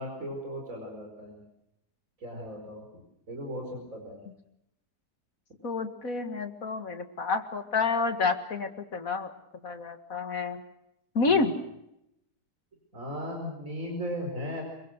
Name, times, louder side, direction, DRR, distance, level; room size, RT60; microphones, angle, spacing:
voice 1, 0.0-1.4 2.2-2.8 3.3-4.2 11.3-11.5 12.9-14.6, equal, 55° right, 1 dB, 5.3 m, -37 dB
voice 2, 5.6-9.3 9.6-10.6 11.1-11.5, left 4 dB, 60° left, 7 dB, 2.3 m, -29 dB
26.5 x 23.0 x 6.5 m, 0.83 s
omnidirectional pair, 1.7 m